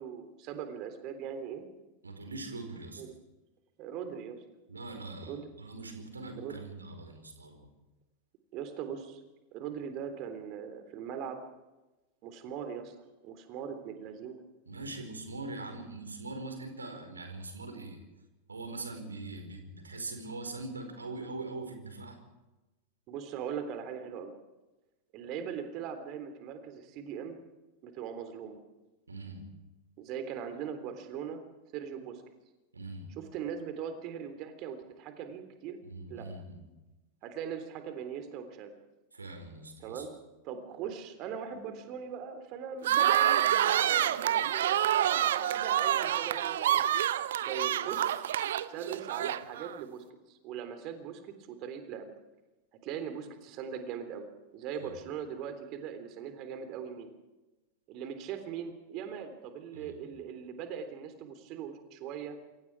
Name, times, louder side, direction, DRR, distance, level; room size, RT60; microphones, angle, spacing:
voice 1, 0.0-1.6 3.0-3.1 3.8-4.4 5.3-5.4 6.4-6.6 8.5-9.2 9.5-11.4 12.2-12.9 13.2-14.4 23.1-24.3 25.1-27.4 27.8-28.6 30.0-31.4 31.7-32.2 33.2-35.8 36.1-36.3 37.2-38.7 39.8-40.1 40.4-46.8 47.4-48.3 48.7-52.1 52.8-54.3 54.5-57.1 57.9-62.4, right 8 dB, 40° right, 8 dB, 3.5 m, -40 dB
voice 2, 2.0-3.0 4.7-7.7 14.7-18.0 18.5-22.2 29.1-29.5 32.7-33.1 35.8-36.7 39.1-40.1 54.8-55.0 59.7-60.0, right 2 dB, 75° right, 6 dB, 4.8 m, -42 dB
sound 1, 42.8-49.8, right 11 dB, 60° right, 1.0 m, -27 dB
27.5 x 24.5 x 4.8 m, 1.1 s
figure-of-eight pair, 90°, 0 cm